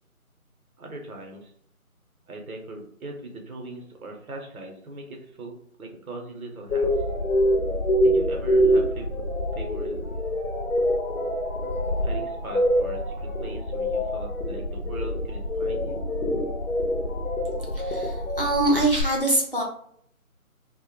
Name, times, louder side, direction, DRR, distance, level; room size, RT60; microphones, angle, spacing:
voice 1, 0.8-1.5 2.3-6.9 8.0-9.3 9.5-10.0 12.0-16.0, right 2 dB, 75° right, 2 dB, 0.8 m, -40 dB
sound 1, 6.7-19.0, equal, 80° left, 0.7 m, -25 dB
voice 2, 17.7-19.6, right 1 dB, 40° left, -2 dB, 0.5 m, -24 dB
2.1 x 2.0 x 2.8 m, 0.66 s
figure-of-eight pair, 170°, 43 cm